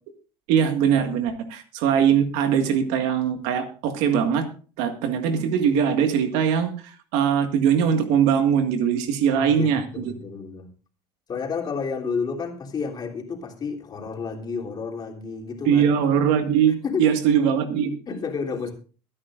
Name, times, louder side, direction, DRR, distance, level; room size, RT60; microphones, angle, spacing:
voice 1, 0.5-4.5 4.8-6.7 7.1-10.1 15.7-18.0, right 8 dB, 80° right, 7 dB, 1.8 m, -21 dB
voice 2, 9.3-10.7 11.3-15.9 16.8-17.1 18.1-18.7, left 5 dB, 35° left, 1 dB, 3.3 m, -31 dB
23.0 x 9.7 x 2.5 m, 0.38 s
supercardioid pair, 105°, 12 cm